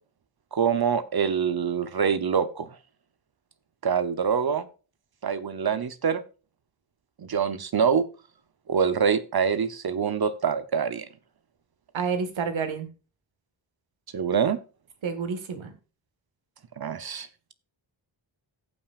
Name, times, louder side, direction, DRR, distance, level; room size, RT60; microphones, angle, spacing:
voice 1, 0.5-2.7 3.8-4.7 5.2-6.2 7.2-8.0 8.7-11.1 14.1-14.6 16.8-17.3, right 6 dB, 55° right, 12 dB, 1.0 m, -25 dB
voice 2, 11.9-12.9 15.0-15.7, right 5 dB, 80° right, 8 dB, 2.0 m, -29 dB
17.0 x 5.8 x 2.6 m, 0.34 s
cardioid pair, 70°, 46 cm